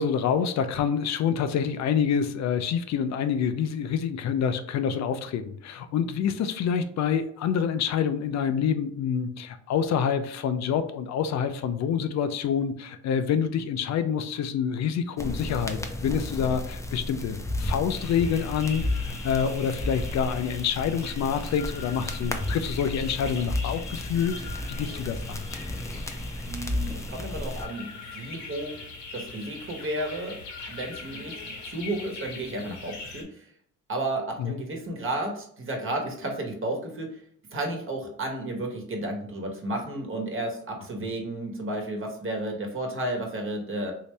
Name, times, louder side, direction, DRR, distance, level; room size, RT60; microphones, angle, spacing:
voice 1, 0.0-24.4 24.7-25.4 34.4-34.6, left 7 dB, 65° left, 10 dB, 0.4 m, -27 dB
sound 1, 15.2-27.6, left 1 dB, 10° left, 0.5 m, -33 dB
sound 2, 17.9-33.2, left 4 dB, 85° left, 1.1 m, -42 dB
voice 2, 26.5-28.8 29.1-30.3 30.7-33.5 33.9-37.2 37.5-43.9, right 1 dB, 45° right, 2 dB, 1.2 m, -32 dB
3.1 x 2.8 x 3.2 m, 0.64 s
cardioid pair, 90°, 30 cm